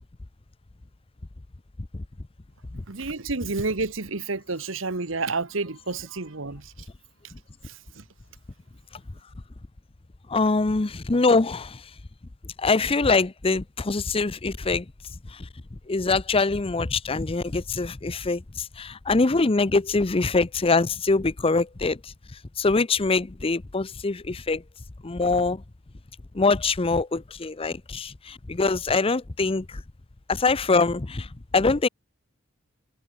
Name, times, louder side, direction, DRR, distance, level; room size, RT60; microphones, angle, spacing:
voice 1, 2.9-6.7 7.6-8.0, right 3 dB, 75° right, 1.5 m, -30 dB
voice 2, 10.3-11.8 12.6-14.9 15.3-15.5 15.9-22.1 22.6-24.6 25.0-25.6 26.3-29.8 30.3-31.3 31.5-31.9, left 3 dB, 30° left, 0.6 m, -24 dB
open air
head